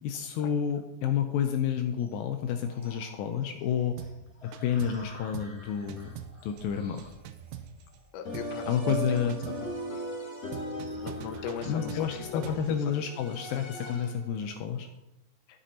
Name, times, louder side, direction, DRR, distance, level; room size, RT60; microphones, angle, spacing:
voice 1, 0.0-4.0 4.6-6.2 6.4-7.0 8.7-9.4 11.6-14.9, left 8 dB, 90° left, 6 dB, 2.0 m, -30 dB
sound 1, 2.0-15.0, left 2 dB, 10° right, 3.1 m, -55 dB
sound 2, 4.0-4.2 4.5-5.1 5.3-5.6 5.9-8.0 8.3-8.6 8.9-9.7 10.5-12.7, right 10 dB, 85° right, 2.5 m, -43 dB
voice 2, 8.1-9.5 10.9-12.9, left 6 dB, 75° left, 6 dB, 1.9 m, -39 dB
sound 3, 8.2-14.3, equal, 45° left, 2.6 m, -38 dB
10.5 x 7.6 x 4.2 m, 0.91 s
omnidirectional pair, 4.9 m